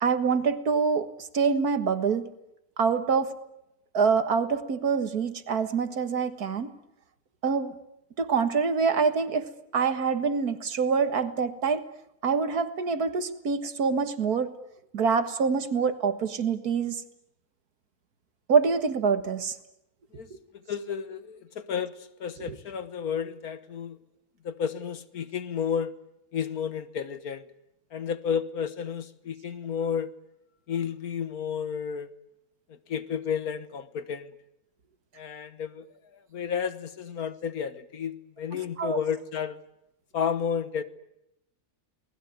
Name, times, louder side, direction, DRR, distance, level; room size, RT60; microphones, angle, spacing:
voice 1, 0.0-2.3 2.8-3.3 3.9-6.7 7.4-7.8 8.2-11.8 12.2-14.5 14.9-17.0 18.5-19.6 22.4-22.6 38.5-39.0, right 5 dB, 85° right, 10 dB, 2.1 m, -25 dB
voice 2, 20.7-21.9 22.2-24.0 24.4-25.9 26.3-27.5 27.9-30.1 30.7-32.1 32.7-34.3 35.2-35.9 36.3-39.6 40.1-40.8, left 7 dB, 75° left, 12 dB, 1.8 m, -31 dB
28.5 x 19.5 x 9.5 m, 0.84 s
omnidirectional pair, 1.6 m